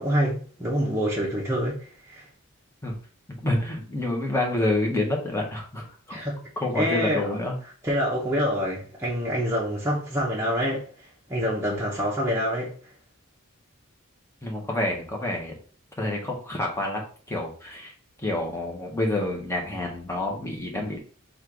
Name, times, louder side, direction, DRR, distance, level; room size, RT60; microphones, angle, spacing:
voice 1, 0.0-2.3 6.1-6.4 6.7-7.3 7.8-10.9 11.3-12.7, equal, 10° right, 0.9 m, -26 dB
voice 2, 3.4-6.2 6.6-7.6 14.4-15.5 16.0-17.0 17.3-17.9 18.2-21.0, left 1 dB, 15° left, 1.1 m, -28 dB
4.4 x 2.5 x 4.6 m
head